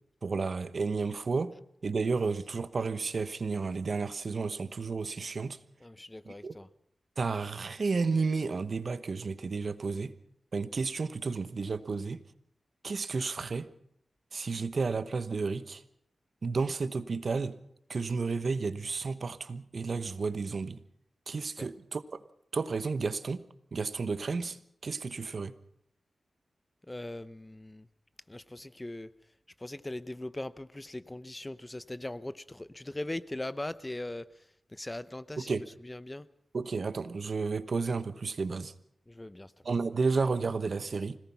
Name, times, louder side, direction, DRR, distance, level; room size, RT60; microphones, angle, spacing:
voice 1, 0.2-1.5 1.8-5.6 6.3-6.5 7.2-10.1 10.5-12.2 12.8-13.7 14.3-15.8 16.4-17.6 17.9-20.8 21.3-22.0 22.5-23.4 23.7-25.5 35.4-35.6 36.5-38.7 39.6-41.2, right 4 dB, 60° right, 13 dB, 1.0 m, -32 dB
voice 2, 5.8-6.7 21.6-21.7 26.8-27.9 28.3-29.1 29.6-36.3 39.1-39.5, left 1 dB, 20° left, 15 dB, 0.8 m, -40 dB
25.5 x 18.0 x 5.9 m, 0.73 s
cardioid pair, 65°, 0 cm